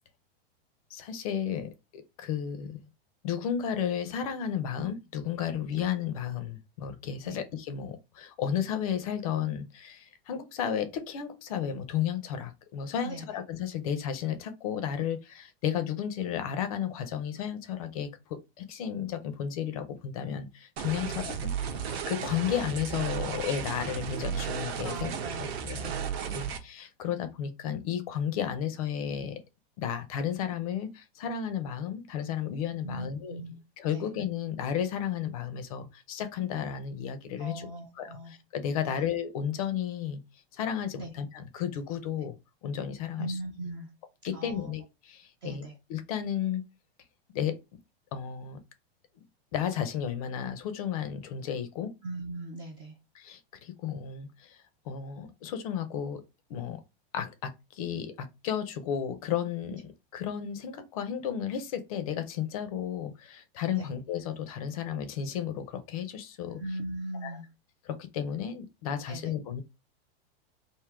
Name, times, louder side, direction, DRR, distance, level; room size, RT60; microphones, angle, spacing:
voice 1, 0.9-2.9 3.2-25.1 25.7-25.9 26.3-29.4 29.8-33.4 33.8-37.7 38.0-40.2 40.5-42.4 42.6-43.4 44.2-45.6 45.9-46.7 47.3-47.6 48.1-48.6 49.5-51.9 53.1-56.2 56.5-56.8 57.1-59.8 60.1-66.6 67.2-67.3 67.9-69.6, left 9 dB, 35° left, 0.5 m, -33 dB
sound 1, 20.8-26.6, right 7 dB, 75° right, 1.1 m, -34 dB
voice 2, 21.0-21.3 24.8-26.4 32.8-33.6 33.9-34.1 37.4-38.3 38.9-39.0 41.0-41.1 43.2-43.9 44.3-44.7 45.4-45.8 52.0-53.0 63.7-63.9 66.6-67.5 69.1-69.3, right 2 dB, 15° right, 0.4 m, -40 dB
3.6 x 2.6 x 4.5 m
supercardioid pair, 170°, 31 cm